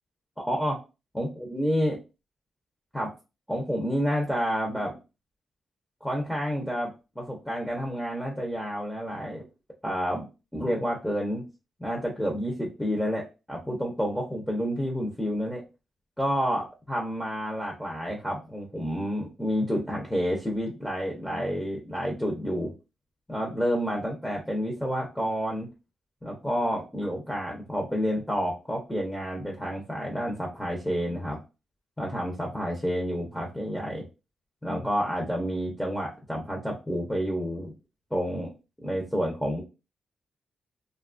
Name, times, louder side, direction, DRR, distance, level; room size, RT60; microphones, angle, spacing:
voice 1, 1.1-2.0 2.9-3.1 3.5-5.0 6.0-9.4 9.8-10.2 10.5-11.4 11.8-15.6 16.2-22.7 23.3-25.7 26.2-31.4 32.0-34.0 34.6-37.7 38.1-38.5 38.8-39.6, equal, 5° left, -1 dB, 0.5 m, -29 dB
2.8 x 2.2 x 2.4 m, 0.29 s
wide cardioid pair, 130°, 0 cm